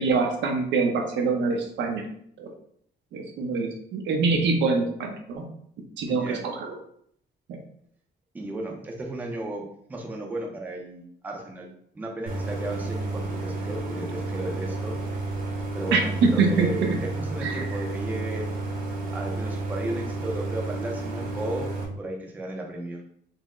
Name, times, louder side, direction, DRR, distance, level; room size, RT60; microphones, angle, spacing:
voice 1, 0.0-2.0 2.4-2.5 3.1-5.4 6.0-6.7 15.9-16.9 17.4-17.5, right 4 dB, 80° right, 2 dB, 0.8 m, -24 dB
voice 2, 6.1-6.4 8.3-15.0 15.7-18.5 19.1-21.7 22.0-23.0, right 1 dB, 10° right, 0 dB, 0.4 m, -34 dB
Idling, 12.3-21.8, right 2 dB, 50° right, 0.8 m, -31 dB
4.2 x 2.0 x 3.6 m, 0.66 s
cardioid pair, 180°, 18 cm